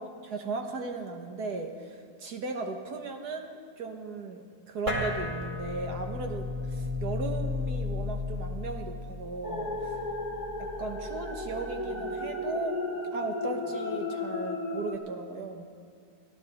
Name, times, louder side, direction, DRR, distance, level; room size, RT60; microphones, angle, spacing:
voice 1, 0.0-10.0 10.6-12.8 13.1-15.7, right 3 dB, 90° right, 4 dB, 1.9 m, -36 dB
sound 1, 4.9-11.6, left 3 dB, 30° right, 2.3 m, -35 dB
sound 2, 9.4-15.0, left 2 dB, 30° left, 1.5 m, -34 dB
24.5 x 16.0 x 3.6 m, 2.3 s
omnidirectional pair, 1.6 m